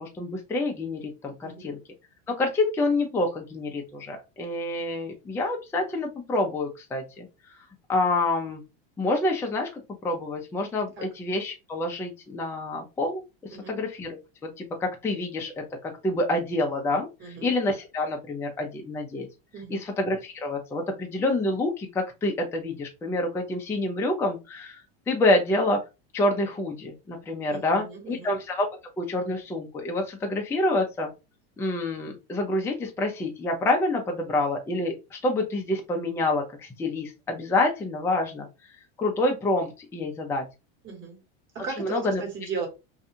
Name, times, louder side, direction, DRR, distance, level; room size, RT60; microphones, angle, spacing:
voice 1, 0.0-1.8 2.3-7.3 7.9-8.6 9.0-13.2 13.7-19.3 19.7-24.8 25.1-25.8 26.1-28.7 29.0-31.1 31.6-38.5 39.0-40.4 41.8-42.2, left 2 dB, 10° left, 1 dB, 0.4 m, -27 dB
voice 2, 19.5-19.8 27.5-28.3 40.8-41.2 41.5-42.7, right 5 dB, 40° right, 1 dB, 1.4 m, -36 dB
2.6 x 2.3 x 2.6 m, 0.26 s
supercardioid pair, 130°, 31 cm